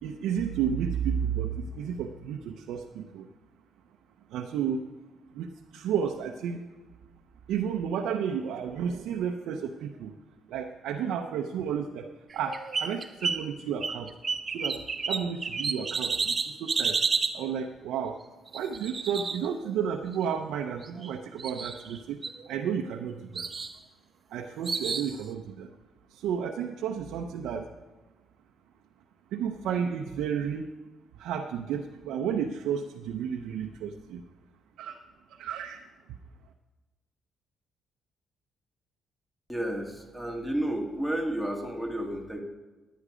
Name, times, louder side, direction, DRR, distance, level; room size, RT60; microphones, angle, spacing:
voice 1, 0.0-3.3 4.3-4.8 5.3-6.6 7.5-10.1 10.5-14.1 14.5-17.0 17.3-18.2 18.5-23.5 24.3-25.7 26.1-27.7 29.3-30.7 31.1-34.2 34.8-35.0 35.3-35.8, right 7 dB, 85° right, 3 dB, 0.6 m, -32 dB
sound 1, 12.3-13.5 13.8-17.4 18.5-20.0 20.8-21.1 21.4-22.0 22.2-23.0 23.4-23.7 24.7-25.1, right 4 dB, 35° right, 0.8 m, -31 dB
voice 2, 39.5-42.4, right 1 dB, 5° left, 2 dB, 1.8 m, -31 dB
11.0 x 9.3 x 5.0 m, 1.2 s
cardioid pair, 90°, 0 cm